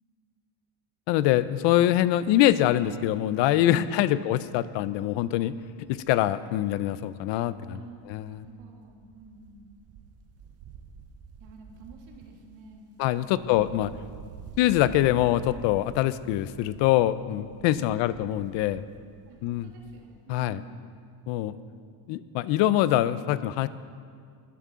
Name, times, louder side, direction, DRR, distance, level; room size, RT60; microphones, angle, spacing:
voice 1, 1.1-5.5 5.9-7.8 8.1-8.4 13.0-13.9 14.6-18.8 19.4-19.7 20.3-20.6 21.3-21.5 22.1-23.7, left 13 dB, 70° left, 16 dB, 0.5 m, -24 dB
Wind, 3.2-3.5 3.8-3.9 4.2-7.8 8.0-20.2 20.5-20.6, right 6 dB, 35° right, 0.5 m, -48 dB
voice 2, 8.3-9.7 11.4-13.6 17.6-18.1 19.3-20.8, right 4 dB, 90° right, 0 dB, 2.1 m, -50 dB
13.0 x 11.0 x 3.6 m, 2.1 s
cardioid pair, 175°, 46 cm